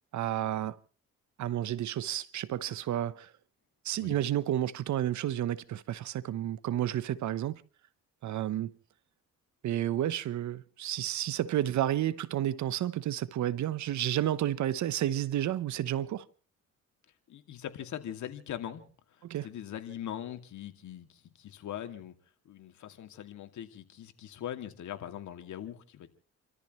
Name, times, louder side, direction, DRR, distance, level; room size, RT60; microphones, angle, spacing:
voice 1, 0.1-0.8 1.4-3.3 3.8-7.6 8.2-8.7 9.6-16.3 19.2-19.5, right 12 dB, 70° right, 1.0 m, -31 dB
voice 2, 17.3-22.2 22.4-26.1, left 10 dB, 70° left, 2.5 m, -41 dB
30.0 x 13.5 x 3.2 m
cardioid pair, 90°, 30 cm